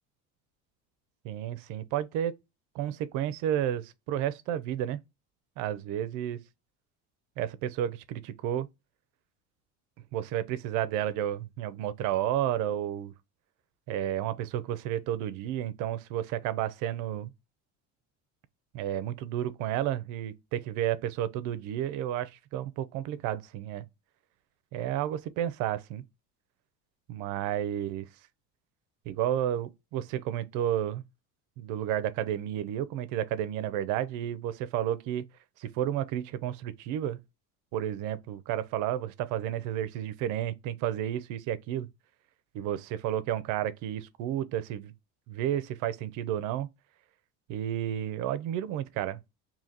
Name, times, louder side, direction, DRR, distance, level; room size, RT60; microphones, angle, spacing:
voice 1, 1.2-2.4 2.7-5.0 5.6-6.4 7.4-8.7 10.1-13.1 13.9-17.3 18.7-23.8 24.7-26.0 27.1-28.1 29.1-31.0 31.6-35.2 35.6-37.2 37.7-41.9 42.5-44.9 45.3-46.7 47.5-49.2, right 11 dB, 65° right, 0.6 m, -31 dB
2.8 x 2.7 x 3.8 m
cardioid pair, 155°, 33 cm